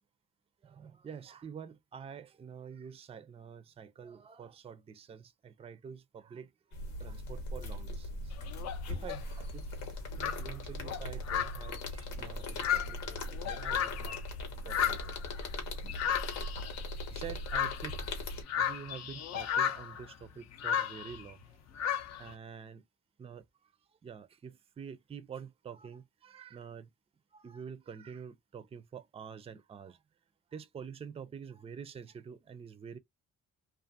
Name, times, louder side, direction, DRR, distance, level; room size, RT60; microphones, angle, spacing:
voice 1, 0.6-8.3 8.9-9.7 9.9-14.2 14.6-15.1 16.2-16.3 17.1-17.9 18.6-21.6 22.2-22.8 23.2-23.7 24.0-26.9 27.3-30.0 30.5-33.0, right 7 dB, 20° right, 0.3 m, -47 dB
sound 1, 6.7-18.4, left 1 dB, 90° left, 1.0 m, -40 dB
sound 2, 8.3-9.2 9.9-10.0 10.2-14.3 14.6-21.3 21.8-22.3, left 9 dB, 60° left, 0.5 m, -34 dB
2.4 x 2.4 x 2.5 m
cardioid pair, 90°, 30 cm